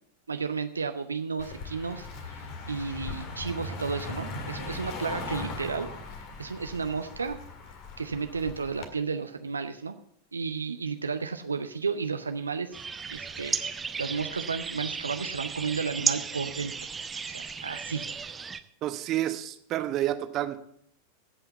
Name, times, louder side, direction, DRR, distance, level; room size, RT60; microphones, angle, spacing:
voice 1, 0.3-5.9 6.4-7.4 8.0-10.0 10.3-12.8 13.1-16.7 17.2-18.0, right 5 dB, 75° right, 8 dB, 0.7 m, -33 dB
Car passing by, 1.4-8.9, left 3 dB, 45° left, 1.9 m, -39 dB
sound 1, 12.7-18.6, right 5 dB, 15° right, 0.7 m, -34 dB
voice 2, 18.8-20.6, right 13 dB, 35° right, 10 dB, 1.0 m, -29 dB
15.5 x 5.8 x 8.1 m, 0.71 s
figure-of-eight pair, 90°, 0 cm